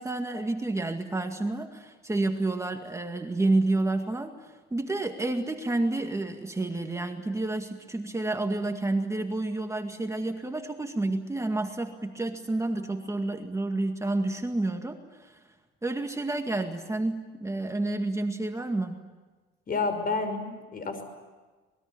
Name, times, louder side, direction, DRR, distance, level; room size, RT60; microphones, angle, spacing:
voice 1, 0.0-15.4 15.8-19.0, right 2 dB, 15° right, 4 dB, 2.1 m, -29 dB
voice 2, 19.7-21.0, left 4 dB, 45° left, 9 dB, 5.9 m, -30 dB
26.0 x 21.0 x 9.9 m, 1.3 s
cardioid pair, 90°, 21 cm